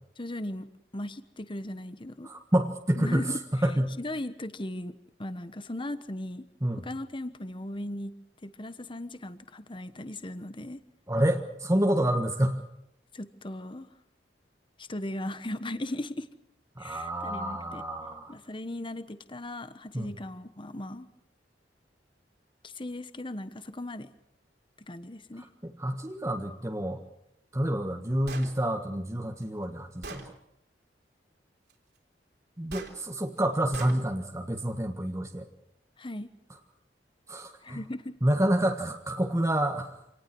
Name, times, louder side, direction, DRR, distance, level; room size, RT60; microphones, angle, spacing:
voice 1, 0.2-0.7 0.9-2.3 3.0-3.7 4.0-6.5 6.8-8.1 8.4-10.8 13.1-13.9 14.8-16.3 16.8-17.8 18.3-21.1 22.6-24.1 24.8-25.5 36.0-36.3 37.6-38.2, left 1 dB, 30° left, 11 dB, 1.2 m, -37 dB
voice 2, 2.2-4.0 6.6-6.8 11.1-12.6 16.8-18.3 19.9-20.1 25.6-27.0 27.5-30.3 32.6-35.5 37.3-37.8 38.2-40.0, right 1 dB, 15° right, 3 dB, 1.5 m, -28 dB
Gunshot gunfire, 28.3-28.5 29.4-29.5 30.0-30.3 32.7-32.9 33.7-34.0, right 3 dB, 65° right, 3.9 m, -40 dB
27.0 x 19.0 x 6.2 m, 0.78 s
head